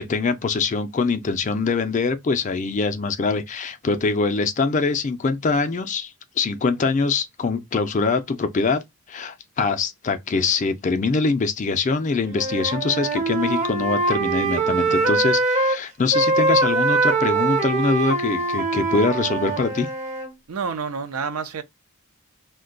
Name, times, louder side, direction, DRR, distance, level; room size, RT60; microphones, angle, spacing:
voice 1, 0.0-8.8 9.1-19.9, left 4 dB, 35° left, 0.3 m, -23 dB
Wind instrument woodwind instrument, 12.3-15.8 16.1-20.3, right 3 dB, 30° right, 0.5 m, -22 dB
voice 2, 20.5-21.6, right 5 dB, 80° right, 0.5 m, -28 dB
2.6 x 2.2 x 3.8 m
head